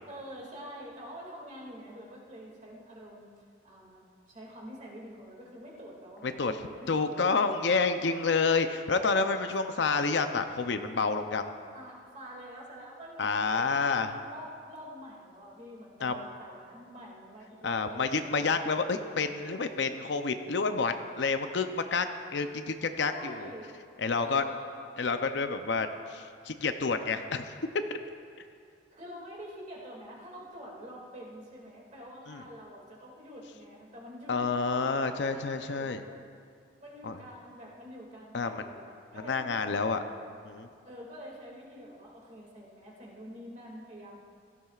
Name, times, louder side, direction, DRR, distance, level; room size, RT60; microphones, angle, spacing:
voice 1, 0.1-3.3 3.6-6.9 7.3-8.2 11.7-18.6 23.1-23.8 24.2-24.7 28.9-36.0 36.8-39.6 40.8-44.2, equal, 40° right, -3 dB, 2.2 m, -47 dB
voice 2, 6.2-6.5 6.9-11.5 13.2-14.2 16.0-16.2 17.6-23.5 24.0-24.4 25.0-27.5 27.9-28.0 32.3-32.4 34.3-36.0 37.0-37.2 38.3-38.9 39.2-40.0 40.4-40.7, left 4 dB, 65° left, 8 dB, 0.6 m, -29 dB
17.0 x 13.5 x 2.4 m, 2.3 s
head